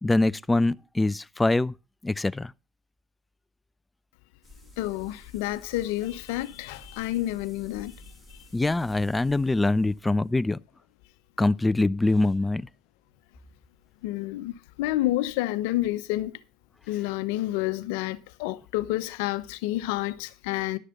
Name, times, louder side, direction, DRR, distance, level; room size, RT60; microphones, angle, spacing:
voice 1, 0.0-1.7 2.0-2.5 8.5-10.6 11.4-12.6, left 2 dB, 15° left, 0.5 m, -24 dB
sound 1, 4.4-10.4, left 1 dB, 5° right, 3.8 m, -51 dB
voice 2, 4.8-7.9 14.0-16.3 16.9-20.8, left 16 dB, 80° left, 0.8 m, -29 dB
11.5 x 6.7 x 5.3 m
supercardioid pair, 85°, 0 cm